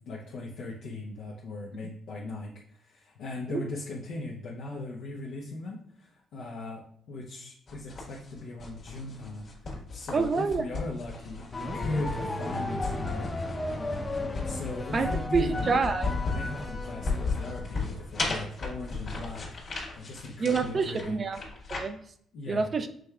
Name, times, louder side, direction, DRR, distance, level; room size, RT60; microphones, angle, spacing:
voice 1, 0.1-6.8 7.1-13.3 13.7-15.6 16.2-19.6 20.0-21.2 22.3-22.7, left 2 dB, 80° left, -5 dB, 0.7 m, -39 dB
sound 1, 7.7-21.8, left 4 dB, 50° left, 1.5 m, -36 dB
voice 2, 10.1-10.6 14.9-16.1 20.4-21.4 21.7-22.0 22.5-22.9, right 4 dB, 40° right, 9 dB, 0.4 m, -27 dB
sound 2, 11.5-18.0, left 1 dB, 20° left, 0.7 m, -35 dB
6.1 x 3.3 x 2.3 m, 0.65 s
cardioid pair, 90°, 0 cm